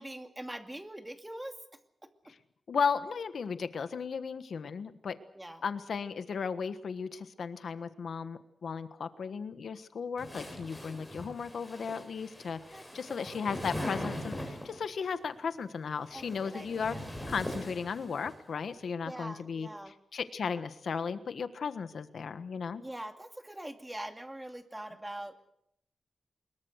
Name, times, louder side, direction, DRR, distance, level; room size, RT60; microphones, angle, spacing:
voice 1, 0.0-1.6 5.3-5.6 12.7-13.7 16.1-17.1 19.0-19.9 22.8-25.4, right 1 dB, 10° right, 6 dB, 2.5 m, -43 dB
voice 2, 2.7-5.2 5.6-17.0 17.3-19.7 20.1-22.8, left 6 dB, 70° left, 11 dB, 1.3 m, -35 dB
sound 1, 10.2-14.9 15.9-18.3, left 1 dB, 5° left, 7.7 m, -41 dB
24.0 x 22.0 x 6.6 m, 0.71 s
wide cardioid pair, 120°, 0 cm